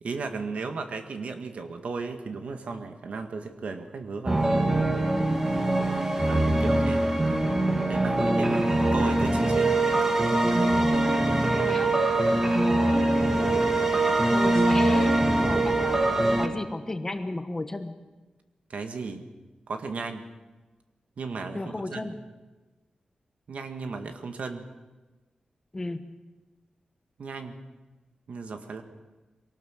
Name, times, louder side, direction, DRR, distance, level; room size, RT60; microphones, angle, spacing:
voice 1, 0.0-4.6 6.3-7.1 7.9-8.7 8.9-9.8 12.3-12.6 18.7-19.3 19.7-20.3 21.2-22.1 23.5-24.7 27.2-27.5 28.3-28.8, right 4 dB, 65° right, 6 dB, 1.9 m, -35 dB
sound 1, 4.3-16.5, right 2 dB, 20° right, 1.6 m, -23 dB
voice 2, 11.6-12.0 12.4-13.2 14.3-17.9 21.5-22.2 25.7-26.2, left 2 dB, 20° left, 8 dB, 1.2 m, -35 dB
23.5 x 18.5 x 6.6 m, 1.2 s
wide cardioid pair, 165°, 2 cm